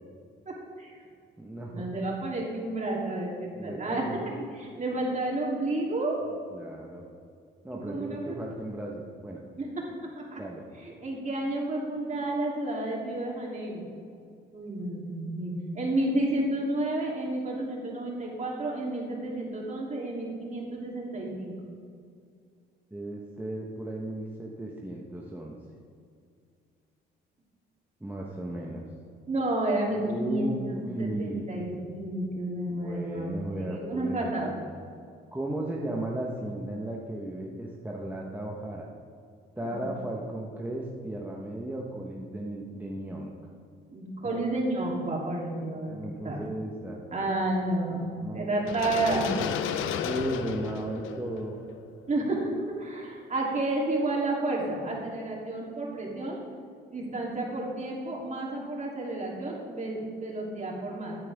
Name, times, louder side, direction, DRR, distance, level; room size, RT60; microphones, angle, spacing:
voice 1, 0.4-1.0 1.7-4.0 4.5-6.2 7.7-8.4 9.6-9.9 10.3-10.4 10.8-13.9 14.5-21.5 29.3-34.5 39.6-39.8 43.9-46.0 46.2-46.4 47.1-48.0 48.3-49.4 49.7-49.8 52.1-56.4 56.9-61.2, right 2 dB, 35° right, -3 dB, 3.2 m, -31 dB
voice 2, 1.4-1.9 3.5-4.2 6.5-7.0 7.6-9.4 10.4-10.7 22.9-25.6 28.0-28.8 30.0-31.5 32.7-34.3 35.3-38.9 39.6-43.3 44.2-44.4 45.9-47.0 48.2-48.5 50.0-51.6, right 1 dB, 10° right, -2 dB, 1.2 m, -35 dB
sound 1, 48.7-52.6, left 8 dB, 85° left, 0.7 m, -33 dB
15.0 x 9.3 x 3.6 m, 2.3 s
cardioid pair, 90°, 20 cm